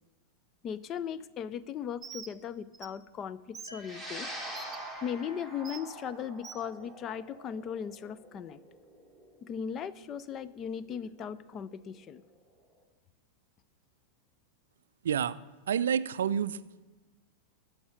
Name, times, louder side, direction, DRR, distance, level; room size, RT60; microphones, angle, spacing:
voice 1, 0.6-4.3 5.0-8.6 9.4-12.2, left 8 dB, 30° left, 16 dB, 0.4 m, -38 dB
Bird, 2.0-2.3 2.7-2.9 3.5-3.7 4.5-4.8 5.6-5.8 6.4-6.6, right 6 dB, 20° right, 0.7 m, -44 dB
sound 1, 3.7-7.6, right 1 dB, 90° left, 1.7 m, -56 dB
sound 2, 3.8-12.3, right 1 dB, 15° left, 2.4 m, -45 dB
voice 2, 15.0-15.4 15.7-16.6, right 8 dB, 65° right, 17 dB, 0.3 m, -28 dB
12.5 x 5.9 x 8.0 m, 1.2 s
figure-of-eight pair, 90°, 0 cm